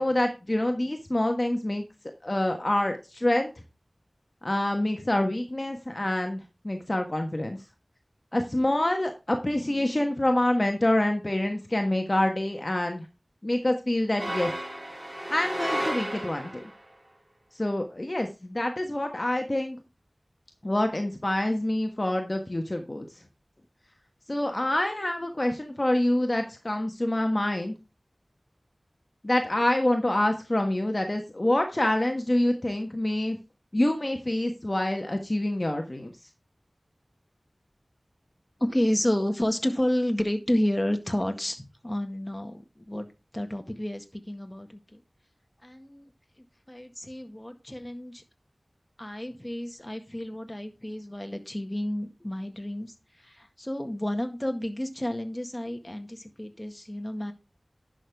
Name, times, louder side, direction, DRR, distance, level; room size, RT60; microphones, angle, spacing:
voice 1, 0.0-1.8 2.2-3.5 4.4-7.6 8.3-13.1 13.4-14.5 15.3-16.6 17.5-19.8 20.6-23.1 24.3-27.8 29.2-33.4 33.7-36.1, left 1 dB, 40° left, 4 dB, 1.3 m, -26 dB
sound 1, 14.2-16.8, right 1 dB, 30° right, 3.6 m, -33 dB
voice 2, 38.6-43.1 43.3-45.0 45.6-46.1 46.7-48.2 49.0-57.3, left 1 dB, 20° left, 6 dB, 1.8 m, -30 dB
11.0 x 6.4 x 3.5 m, 0.28 s
wide cardioid pair, 45°, 0 cm